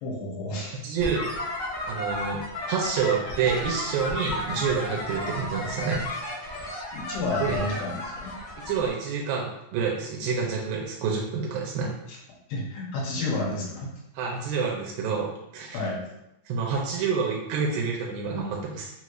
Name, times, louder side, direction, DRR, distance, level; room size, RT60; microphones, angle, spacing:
voice 1, 0.0-0.8 6.9-8.3 12.1-12.2 12.5-13.9 15.7-16.0, left 2 dB, 85° left, -2 dB, 2.6 m, -31 dB
voice 2, 0.8-1.3 1.9-2.4 2.7-6.0 6.3-6.7 7.4-7.6 8.6-11.9 14.1-15.9 16.5-18.9, right 5 dB, 85° right, -1 dB, 2.3 m, -28 dB
sound 1, 1.0-8.9, left 1 dB, 65° left, 1.3 m, -33 dB
5.6 x 3.0 x 2.4 m, 0.86 s
omnidirectional pair, 4.0 m